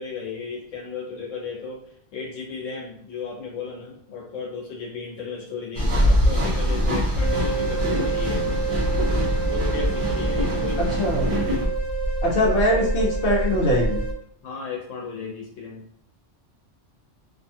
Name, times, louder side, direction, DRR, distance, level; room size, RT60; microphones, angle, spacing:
voice 1, 0.0-1.8 2.1-8.6 9.5-10.9 14.4-15.8, left 5 dB, 85° left, -3 dB, 1.1 m, -35 dB
sound 1, 5.7-11.7, equal, 40° right, 0.5 m, -24 dB
sound 2, 7.2-14.1, right 2 dB, 45° left, 0.7 m, -26 dB
voice 2, 11.0-11.3 12.2-14.0, equal, 65° left, -2 dB, 1.0 m, -22 dB
2.6 x 2.3 x 2.7 m, 0.72 s
omnidirectional pair, 1.3 m